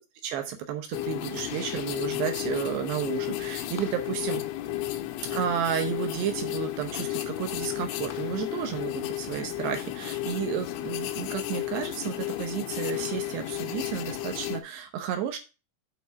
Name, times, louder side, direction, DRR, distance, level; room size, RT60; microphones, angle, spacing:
voice 1, 0.2-4.4 5.3-15.4, right 9 dB, 75° right, 6 dB, 2.7 m, -32 dB
sound 1, 0.9-14.6, left 15 dB, 80° left, 3.1 m, -33 dB
8.4 x 4.2 x 5.6 m, 0.29 s
omnidirectional pair, 5.8 m